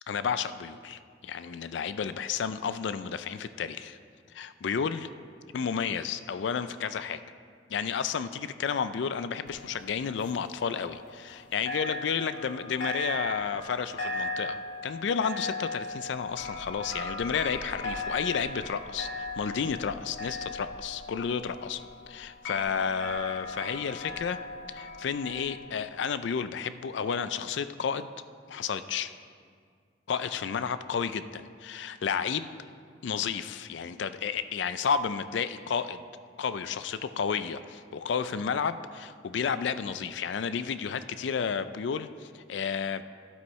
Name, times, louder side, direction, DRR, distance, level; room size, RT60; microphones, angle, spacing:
voice 1, 0.1-4.0 4.3-5.1 5.5-7.2 7.7-21.8 22.1-24.4 24.7-28.1 28.5-29.1 30.1-32.5 33.0-36.0 36.4-43.0, left 6 dB, 70° left, 13 dB, 0.4 m, -31 dB
sound 1, 9.5-11.4 11.7-25.6, left 2 dB, 90° left, 1.9 m, -38 dB
12.5 x 11.5 x 3.1 m, 2.1 s
head